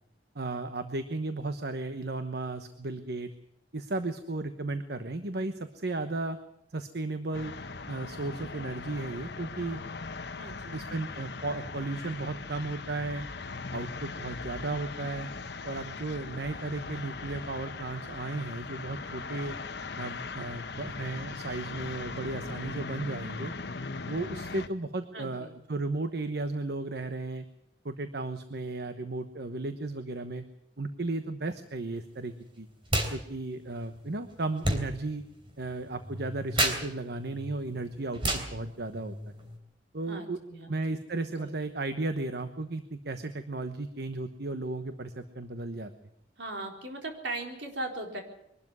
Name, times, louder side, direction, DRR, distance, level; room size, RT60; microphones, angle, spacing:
voice 1, 0.3-3.3 3.7-6.4 6.7-7.5 7.9-9.8 10.7-13.3 13.7-15.3 15.6-19.6 20.0-23.5 24.0-27.4 27.8-30.4 30.8-32.7 33.1-35.2 35.6-39.1 39.9-40.4 40.7-45.9, right 2 dB, 65° right, 9 dB, 1.1 m, -35 dB
sound 1, 7.3-24.7, left 4 dB, 65° left, 1.1 m, -39 dB
voice 2, 10.4-10.8 25.1-25.5 40.1-41.0 41.4-41.6 46.4-48.2, right 2 dB, 80° right, 2 dB, 4.1 m, -39 dB
sound 2, 32.8-33.2 33.4-39.6, right 1 dB, 30° right, 3.3 m, -33 dB
23.0 x 12.5 x 9.6 m, 0.80 s
head